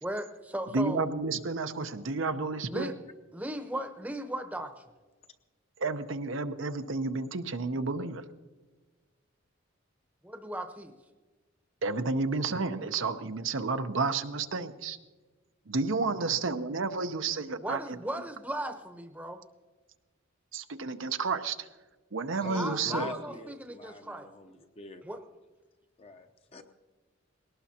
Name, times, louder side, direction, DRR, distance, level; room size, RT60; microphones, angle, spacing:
voice 1, 0.0-1.1 2.7-2.9 3.3-4.7 10.2-10.9 17.6-19.4 22.5-24.3 25.0-25.2, right 1 dB, 10° right, 7 dB, 0.9 m, -36 dB
voice 2, 0.7-2.9 5.8-8.2 11.8-15.0 15.7-18.0 20.5-21.7 22.1-23.1, right 4 dB, 70° right, 8 dB, 0.7 m, -31 dB
voice 3, 22.4-25.0 26.0-26.6, left 2 dB, 30° left, 6 dB, 0.8 m, -43 dB
20.5 x 18.0 x 2.9 m, 1.3 s
head